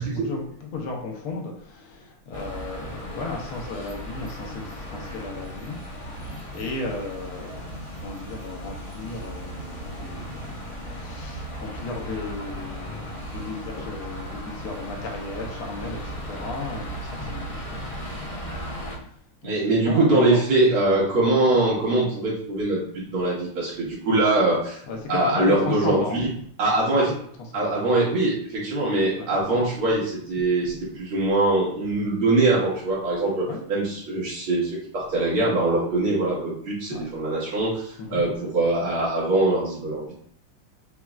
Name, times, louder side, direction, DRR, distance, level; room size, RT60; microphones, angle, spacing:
voice 1, 0.1-20.6 20.9-21.0 21.4-21.9 24.9-26.5 26.9-27.8 29.2-29.6 29.9-30.0 30.6-30.7 33.5-33.7 36.9-37.1 38.0-38.2, left 3 dB, 85° left, 0 dB, 1.8 m, -35 dB
sound 1, 2.3-19.0, equal, 30° left, 0.6 m, -36 dB
voice 2, 19.4-24.8 25.1-26.2 26.6-27.1 27.5-40.2, right 2 dB, 75° right, -7 dB, 2.4 m, -23 dB
5.7 x 3.0 x 2.4 m, 0.63 s
omnidirectional pair, 2.4 m